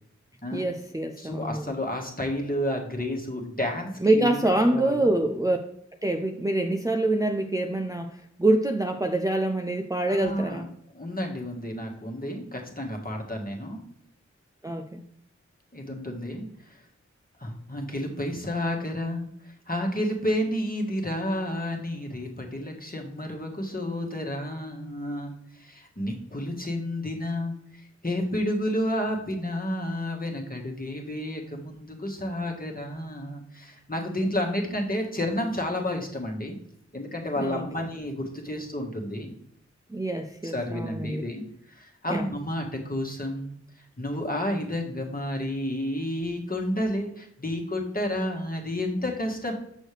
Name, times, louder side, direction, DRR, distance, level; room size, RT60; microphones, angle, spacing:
voice 1, 0.5-1.6 4.0-5.6 6.0-10.7 14.6-15.0 37.4-37.6 39.9-41.2 42.1-42.2, right 1 dB, 10° right, 3 dB, 0.5 m, -25 dB
voice 2, 1.2-5.2 10.1-10.6 10.9-13.8 15.7-16.8 17.4-27.5 28.0-36.6 36.9-39.3 40.4-41.4 41.7-43.6 44.0-49.5, left 1 dB, 30° left, 0 dB, 1.5 m, -31 dB
6.3 x 6.3 x 3.3 m, 0.71 s
wide cardioid pair, 40°, 29 cm